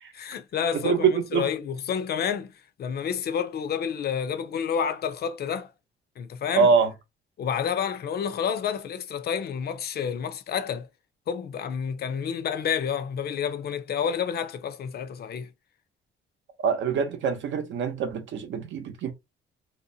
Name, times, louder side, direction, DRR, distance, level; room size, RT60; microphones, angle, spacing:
voice 1, 0.1-2.5 2.8-5.7 6.2-6.7 7.4-10.9 11.3-15.5, left 7 dB, 55° left, 0.5 m, -29 dB
voice 2, 0.8-1.5 6.5-6.9 16.6-19.1, right 6 dB, 70° right, 0.7 m, -24 dB
2.7 x 2.1 x 2.6 m
cardioid pair, 90°, 20 cm